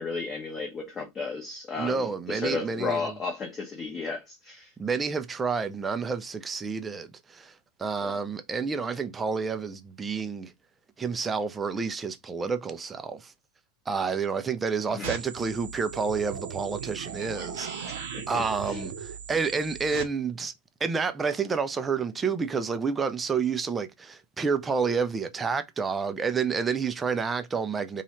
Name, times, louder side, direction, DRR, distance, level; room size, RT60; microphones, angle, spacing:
voice 1, 0.0-4.7 8.0-8.2 14.9-15.2 17.6-18.8, left 4 dB, 20° left, 0.8 m, -34 dB
voice 2, 1.8-3.1 4.8-10.5 11.0-13.3 13.9-18.0 18.3-20.5 20.8-28.0, right 5 dB, 15° right, 0.4 m, -29 dB
sound 1, 15.0-20.0, right 7 dB, 55° right, 0.7 m, -38 dB
3.0 x 2.3 x 2.9 m
figure-of-eight pair, 90°, 0 cm